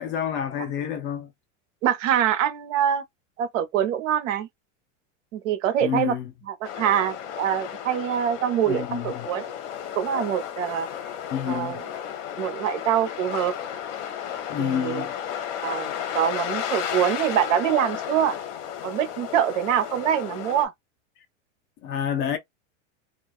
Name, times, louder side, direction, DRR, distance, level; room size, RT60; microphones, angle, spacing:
voice 1, 0.0-1.3 5.8-6.3 8.7-9.3 11.3-11.8 14.5-15.1 21.8-22.4, left 9 dB, 30° left, 0.4 m, -28 dB
voice 2, 1.8-3.0 3.4-4.5 5.3-6.1 6.5-9.5 10.0-10.9 11.5-11.8 12.4-13.5 14.6-15.1 15.6-18.3 18.8-20.7, right 10 dB, 80° right, 0.8 m, -24 dB
sound 1, 6.6-20.7, left 9 dB, 65° left, 0.8 m, -33 dB
2.4 x 2.2 x 2.3 m
supercardioid pair, 145°, 38 cm